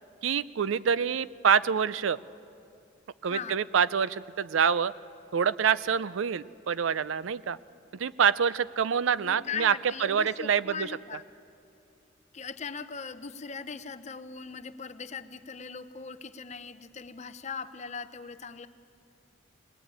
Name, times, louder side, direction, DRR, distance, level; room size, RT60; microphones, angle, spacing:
voice 1, 0.2-2.2 3.2-4.9 5.3-7.6 8.0-9.7 10.0-10.9, right 7 dB, 75° right, 17 dB, 0.4 m, -26 dB
voice 2, 3.3-3.6 9.2-11.2 12.3-18.7, left 5 dB, 35° left, 12 dB, 0.6 m, -39 dB
21.0 x 19.5 x 8.8 m, 2.7 s
head